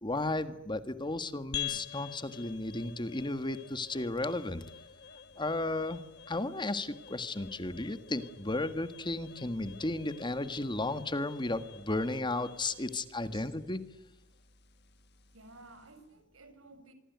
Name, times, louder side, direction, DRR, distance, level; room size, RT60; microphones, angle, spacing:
voice 1, 0.0-4.6 5.4-13.8, left 2 dB, 25° left, 11 dB, 1.7 m, -34 dB
sound 1, 1.5-16.1, left 9 dB, 55° left, 1.4 m, -47 dB
voice 2, 15.3-16.9, right 2 dB, 85° right, 10 dB, 6.1 m, -54 dB
26.0 x 23.5 x 9.5 m, 0.87 s
head